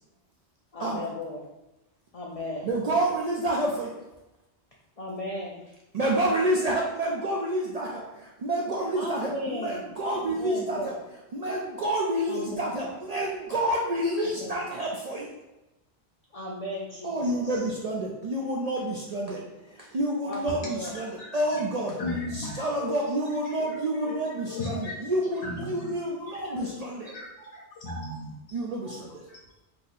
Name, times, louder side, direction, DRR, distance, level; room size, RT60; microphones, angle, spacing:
voice 1, 0.7-1.5 2.1-2.7 5.0-5.6 8.9-11.0 12.3-12.6 14.4-14.5 16.4-17.6 20.2-20.9 25.7-25.8, left 1 dB, 55° left, -3 dB, 0.4 m, -36 dB
voice 2, 2.6-4.0 5.9-10.9 11.3-15.3 17.0-22.0 22.3-27.2 28.5-28.9, right 1 dB, 65° right, -3 dB, 0.4 m, -29 dB
voice 3, 20.9-21.6 22.0-23.1 23.6-23.8 24.0-24.2 24.4-25.0 25.4-26.7 27.0-28.3, left 2 dB, 80° left, -3 dB, 0.9 m, -36 dB
2.8 x 2.6 x 3.9 m, 0.98 s
omnidirectional pair, 1.2 m